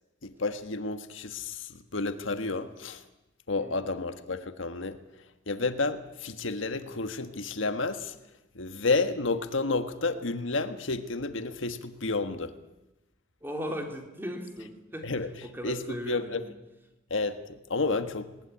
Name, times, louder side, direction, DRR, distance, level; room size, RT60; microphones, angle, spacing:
voice 1, 0.2-3.0 3.5-5.0 5.5-8.1 8.5-12.5 15.0-15.3 15.6-16.4 17.1-18.3, left 3 dB, 80° left, 9 dB, 1.5 m, -31 dB
voice 2, 3.6-3.9 13.4-15.1 15.4-16.4, equal, 10° right, 3 dB, 3.3 m, -37 dB
20.0 x 19.0 x 10.0 m, 0.97 s
head